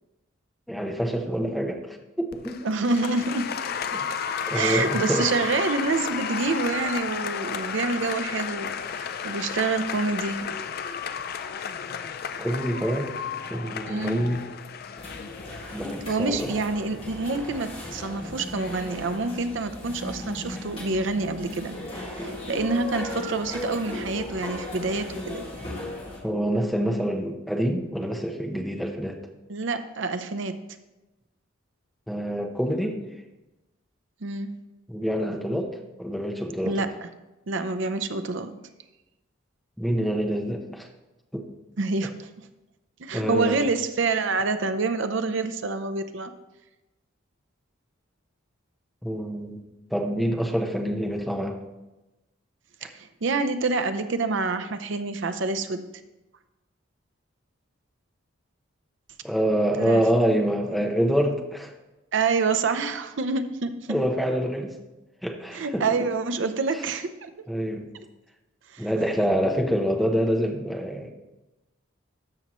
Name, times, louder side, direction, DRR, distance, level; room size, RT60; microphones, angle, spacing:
voice 1, 0.7-2.6 3.9-4.1 4.5-5.3 12.4-13.1 13.5-14.4 15.7-16.6 26.2-29.2 32.1-33.1 34.9-36.8 39.8-40.9 41.3-41.4 43.1-43.7 49.0-49.6 49.9-51.6 52.8-52.9 59.2-61.7 63.9-64.8 65.2-66.0 67.5-67.9 68.8-71.1, equal, ahead, 2 dB, 0.7 m, -26 dB
Applause, 2.3-19.4, left 7 dB, 45° left, 0.4 m, -33 dB
voice 2, 2.6-3.5 4.5-10.4 13.9-14.3 16.1-25.4 29.5-30.6 34.2-34.5 36.7-36.9 37.5-38.5 41.8-42.3 43.0-46.3 52.9-55.9 59.8-60.0 60.3-60.5 62.1-63.7 65.5-67.3 68.7-68.9, right 3 dB, 60° right, 10 dB, 0.6 m, -27 dB
sound 1, 15.0-26.2, left 1 dB, 25° left, 1.9 m, -37 dB
13.5 x 5.5 x 3.0 m, 1.0 s
head